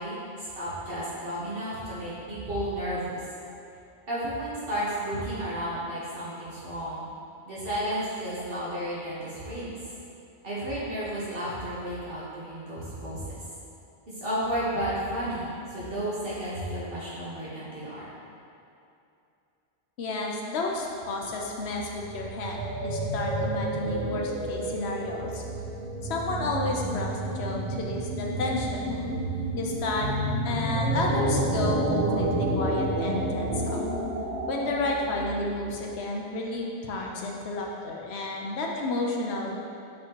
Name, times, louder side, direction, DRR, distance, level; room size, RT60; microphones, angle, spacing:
voice 1, 0.0-3.2 4.1-7.1 7.5-9.8 10.4-13.2 14.2-18.1, right 1 dB, 60° right, -10 dB, 1.6 m, -32 dB
voice 2, 20.0-25.4 26.1-28.9 29.6-30.1 30.4-33.8 34.5-39.6, left 2 dB, 80° left, -1 dB, 1.0 m, -31 dB
sound 1, 21.7-35.8, right 1 dB, 85° right, 1.0 m, -30 dB
8.2 x 4.3 x 3.0 m, 2.7 s
omnidirectional pair, 1.1 m